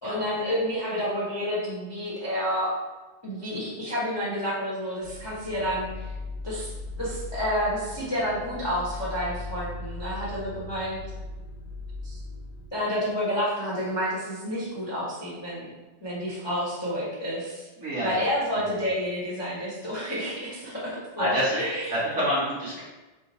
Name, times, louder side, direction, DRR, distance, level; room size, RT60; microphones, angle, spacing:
voice 1, 0.0-2.7 3.2-6.1 6.4-6.7 7.0-11.0 12.0-12.2 12.7-15.7 16.0-17.7 18.0-22.0, equal, 20° left, -8 dB, 0.6 m, -29 dB
sound 1, 5.0-12.7, left 2 dB, 85° left, 2.1 m, -38 dB
voice 2, 17.8-18.2 21.2-21.6 21.9-22.8, equal, 45° right, -8 dB, 1.4 m, -27 dB
4.6 x 2.1 x 4.1 m, 1.1 s
omnidirectional pair, 2.1 m